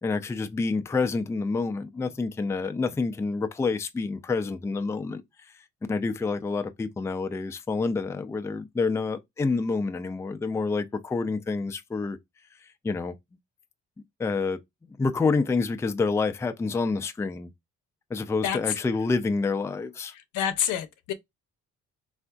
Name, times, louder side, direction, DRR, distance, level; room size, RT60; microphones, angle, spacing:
voice 1, 0.0-5.6 5.9-12.2 12.6-13.1 14.2-14.6 15.0-17.5 18.1-20.1, left 4 dB, 10° left, 0.3 m, -28 dB
voice 2, 18.4-18.8 20.1-21.1, left 9 dB, 80° left, 0.6 m, -28 dB
3.5 x 2.5 x 2.2 m
cardioid pair, 90°, 30 cm